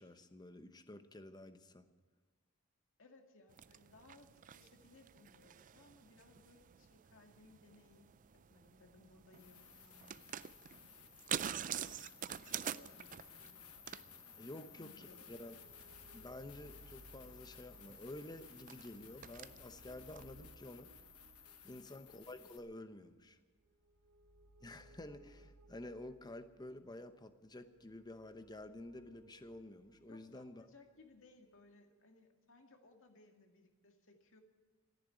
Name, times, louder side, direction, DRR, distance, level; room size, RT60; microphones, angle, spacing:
voice 1, 0.0-1.9 14.4-15.6 16.1-20.9 21.6-23.4 24.6-30.7, left 1 dB, 20° left, 10 dB, 0.9 m, -51 dB
voice 2, 3.0-10.3 11.8-12.0 12.5-13.7 14.5-15.3 21.6-21.9 30.0-34.4, left 3 dB, 65° left, 4 dB, 2.1 m, -64 dB
sound 1, 3.5-20.2, right 9 dB, 35° right, 0.4 m, -48 dB
sound 2, 9.3-22.6, left 8 dB, 80° left, 1.1 m, -58 dB
sound 3, 14.9-31.6, right 1 dB, 65° right, 0.8 m, -64 dB
14.5 x 10.5 x 9.1 m, 1.4 s
head